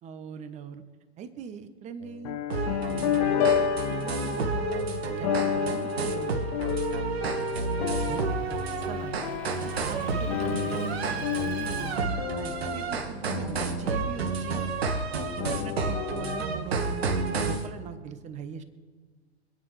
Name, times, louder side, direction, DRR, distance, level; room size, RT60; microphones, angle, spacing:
voice 1, 0.0-0.8 1.2-2.4 2.8-3.5 3.9-6.5 8.1-9.1 9.7-14.7 15.4-18.6, right 7 dB, 20° right, 11 dB, 1.0 m, -41 dB
sound 1, 2.0-14.9 15.4-16.4, left 9 dB, 35° left, 0.7 m, -31 dB
sound 2, 2.5-17.7, right 4 dB, 65° right, 1.7 m, -30 dB
Motor vehicle (road) / Engine, 5.6-12.0, right 1 dB, 5° left, 2.0 m, -45 dB
26.0 x 9.1 x 3.3 m, 1.5 s
figure-of-eight pair, 105°, 34 cm